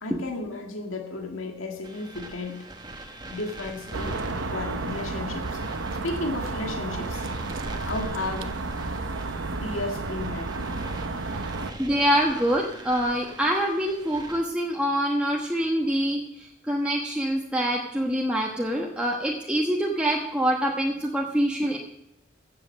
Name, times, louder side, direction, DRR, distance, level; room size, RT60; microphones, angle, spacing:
voice 1, 0.0-2.7 3.3-5.6 6.0-7.3 7.8-8.5 9.6-10.8 11.2-11.6, left 2 dB, 80° left, 3 dB, 1.8 m, -34 dB
sound 1, 1.8-14.4, right 2 dB, 20° right, 1.3 m, -43 dB
sound 2, 3.9-11.7, right 3 dB, 70° right, 0.9 m, -32 dB
voice 2, 11.8-21.8, equal, 5° right, -2 dB, 1.1 m, -25 dB
15.5 x 7.8 x 6.4 m, 0.84 s
head